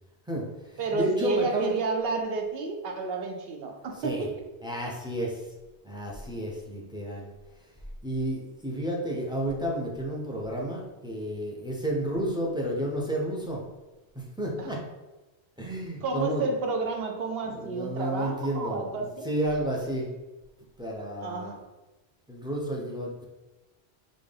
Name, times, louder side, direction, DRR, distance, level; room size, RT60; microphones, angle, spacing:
voice 1, 0.3-1.7 4.0-4.3 4.6-5.5 5.8-7.3 8.0-13.6 14.1-14.8 15.6-16.5 17.5-20.1 20.8-21.6 22.3-23.2, right 1 dB, 5° right, -2 dB, 0.3 m, -31 dB
voice 2, 0.8-4.3 14.6-14.8 16.0-19.3 21.2-21.6, right 3 dB, 70° right, 3 dB, 0.8 m, -30 dB
3.8 x 2.5 x 3.4 m, 1.1 s
omnidirectional pair, 1.1 m